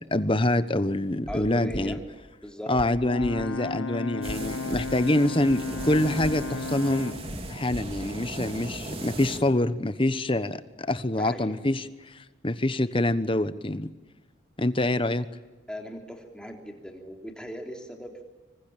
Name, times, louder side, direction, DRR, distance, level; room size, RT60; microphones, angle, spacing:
voice 1, 0.0-2.0 2.7-7.2 7.5-13.9 14.6-15.3, left 1 dB, 25° left, 13 dB, 1.1 m, -26 dB
sound 1, 1.2-1.4 1.7-1.8 2.7-2.9 3.2-3.3 4.2-4.4 4.7-4.8 5.7-5.9 6.2-6.3 7.2-7.4 7.7-7.8, equal, 45° left, 5.3 m, -37 dB
voice 2, 1.3-2.0 2.4-2.7 11.2-11.5 15.7-18.2, equal, 5° left, 2 dB, 3.4 m, -38 dB
Brass instrument, 3.0-7.3, left 3 dB, 85° left, 1.0 m, -34 dB
sound 2, 4.2-9.4, right 2 dB, 30° right, 3.2 m, -38 dB
26.5 x 24.0 x 9.0 m, 1.2 s
head